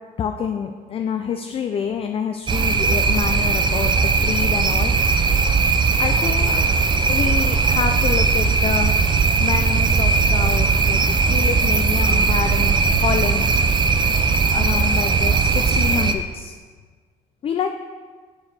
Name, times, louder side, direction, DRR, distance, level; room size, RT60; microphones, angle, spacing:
voice 1, 0.2-5.1 6.0-6.6 7.1-8.9 9.4-11.0 11.3-13.5 14.5-16.5 17.4-17.8, left 7 dB, 35° left, 6 dB, 0.3 m, -27 dB
sound 1, 2.5-16.1, right 4 dB, 25° right, 0.4 m, -18 dB
6.3 x 4.9 x 4.0 m, 1.5 s
cardioid pair, 110°, 17 cm